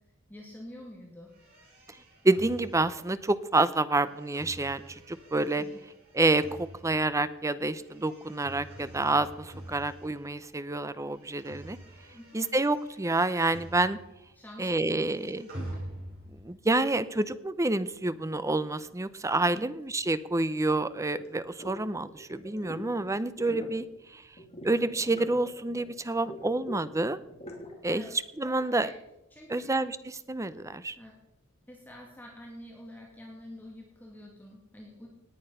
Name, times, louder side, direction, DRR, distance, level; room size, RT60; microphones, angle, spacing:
voice 1, 0.3-1.3 5.6-5.8 12.1-12.4 14.3-15.0 19.5-19.7 27.9-28.1 28.5-29.0 29.3-29.7 31.0-31.2 31.7-35.1, left 1 dB, 10° left, -2 dB, 2.4 m, -47 dB
sound 1, 1.3-10.6 10.8-14.3 14.6-16.5, right 1 dB, 50° right, 6.9 m, -47 dB
voice 2, 2.2-5.6 6.1-11.8 12.3-14.0 14.6-15.5 16.4-23.8 24.1-24.2 24.6-27.2 27.8-28.0 28.4-28.9 29.5-31.0, right 2 dB, 15° right, 14 dB, 0.6 m, -28 dB
sound 2, 21.1-21.3 21.6-21.8 22.1-22.9 23.2-23.8 24.4-25.9 26.2-27.8, left 1 dB, 30° left, 2.9 m, -43 dB
18.5 x 8.9 x 5.6 m, 0.91 s
head